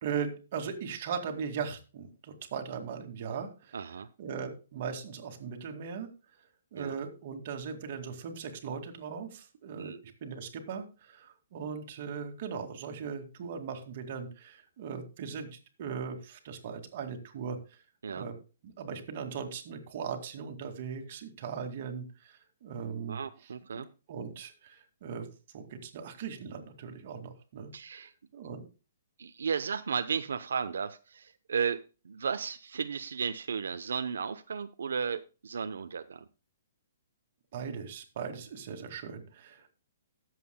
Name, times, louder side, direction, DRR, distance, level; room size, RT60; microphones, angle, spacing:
voice 1, 0.0-3.8 4.2-6.1 6.7-9.9 10.2-17.6 18.1-18.4 18.6-23.2 24.1-25.3 25.5-28.0 28.3-28.7 37.5-39.7, right 6 dB, 40° right, 5 dB, 2.1 m, -39 dB
voice 2, 3.7-4.1 6.8-7.0 9.8-10.0 18.0-18.3 23.1-23.9 27.7-28.1 29.2-36.2, right 6 dB, 85° right, 9 dB, 0.7 m, -34 dB
19.5 x 7.7 x 2.2 m, 0.32 s
hypercardioid pair, 170°, 0 cm